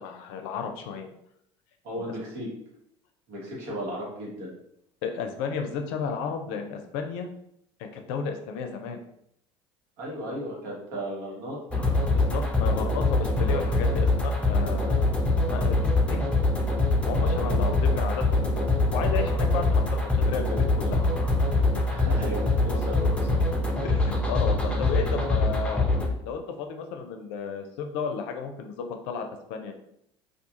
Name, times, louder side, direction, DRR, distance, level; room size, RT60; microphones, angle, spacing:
voice 1, 0.0-1.1 2.0-2.1 5.0-7.3 7.8-9.0 12.1-15.2 15.5-16.3 17.0-21.0 23.8-25.9 26.2-29.7, left 6 dB, 70° left, 5 dB, 0.4 m, -33 dB
voice 2, 1.8-2.5 3.3-4.5 10.0-11.6 17.2-18.0 21.9-23.5, equal, 65° right, -4 dB, 1.2 m, -36 dB
sound 1, 11.7-26.1, left 2 dB, 10° left, 0.6 m, -24 dB
2.4 x 2.3 x 2.8 m, 0.75 s
hypercardioid pair, 75°, 14 cm